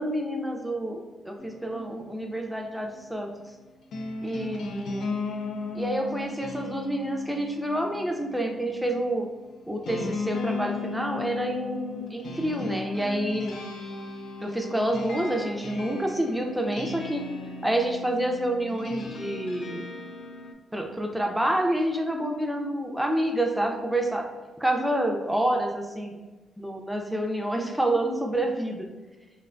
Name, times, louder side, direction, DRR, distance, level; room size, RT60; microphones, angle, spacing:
voice 1, 0.0-3.3 4.2-5.2 5.7-9.3 9.7-13.6 14.4-17.2 17.6-19.9 20.7-24.3 24.6-26.2 26.6-28.9, right 1 dB, 5° right, 2 dB, 0.4 m, -28 dB
sound 1, 1.4-20.5, left 3 dB, 70° left, 0.3 m, -37 dB
2.5 x 2.1 x 2.4 m, 1.2 s
cardioid pair, 80°, 0 cm